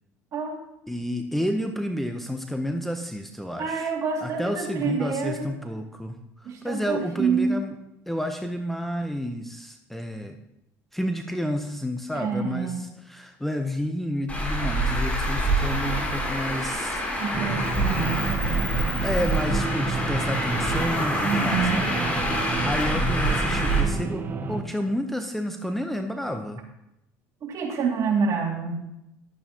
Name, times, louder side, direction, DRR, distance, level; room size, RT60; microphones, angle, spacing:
voice 1, 0.9-3.9 4.2-7.7 8.1-10.4 10.9-17.0 19.0-21.8 22.2-26.6, equal, 5° left, 5 dB, 0.7 m, -30 dB
voice 2, 3.6-5.5 6.4-7.5 12.1-12.8 17.2-18.1 21.2-21.8 27.4-28.8, right 5 dB, 50° right, 0 dB, 2.2 m, -27 dB
Traffic noise roadway noise, 14.3-23.8, right 1 dB, 20° left, 2.8 m, -26 dB
sound 1, 17.3-24.6, right 4 dB, 30° right, 0.9 m, -30 dB
11.0 x 8.4 x 2.8 m, 0.85 s
supercardioid pair, 90°, 7 cm